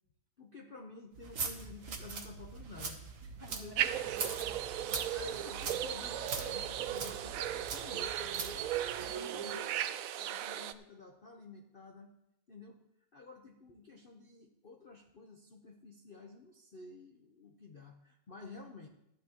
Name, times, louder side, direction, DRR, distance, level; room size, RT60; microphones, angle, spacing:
voice 1, 0.4-3.0 3.5-3.8 5.1-8.6 9.0-12.2 12.5-12.8 13.1-18.9, left 3 dB, 45° left, 1 dB, 0.7 m, -51 dB
sound 1, 1.1-9.2, right 5 dB, 50° right, 1.4 m, -42 dB
voice 2, 3.4-5.0 9.0-9.7, right 2 dB, 15° right, -4 dB, 2.2 m, -53 dB
sound 2, 3.8-10.7, right 11 dB, 75° right, 0.8 m, -36 dB
14.0 x 11.0 x 2.9 m, 0.83 s
omnidirectional pair, 1.9 m